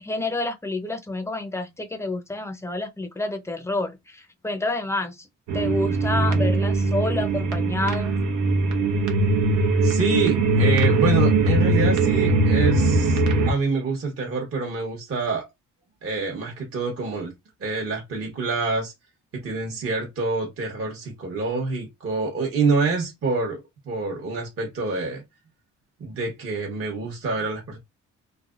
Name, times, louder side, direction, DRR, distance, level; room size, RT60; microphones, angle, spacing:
voice 1, 0.0-5.3 5.5-8.2, left 2 dB, 10° left, 0.6 m, -29 dB
sound 1, 5.5-13.5, right 2 dB, 75° right, 0.8 m, -21 dB
voice 2, 9.8-13.2 13.5-15.5 16.0-17.3 17.6-18.9 19.3-23.6 23.8-25.2 26.0-27.8, right 3 dB, 50° right, 1.1 m, -26 dB
3.2 x 2.1 x 2.4 m
cardioid pair, 90°, 30 cm